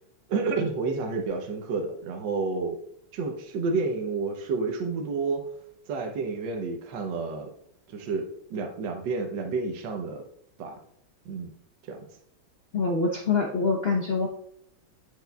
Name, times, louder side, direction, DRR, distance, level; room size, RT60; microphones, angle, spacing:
voice 1, 0.3-2.8 3.1-5.5 5.9-7.5 7.9-10.2 10.6-10.8 11.2-11.5 11.8-12.1, right 4 dB, 70° right, 3 dB, 1.5 m, -30 dB
voice 2, 12.7-14.3, left 4 dB, 65° left, 0 dB, 0.6 m, -25 dB
8.3 x 6.3 x 2.3 m, 0.71 s
omnidirectional pair, 2.2 m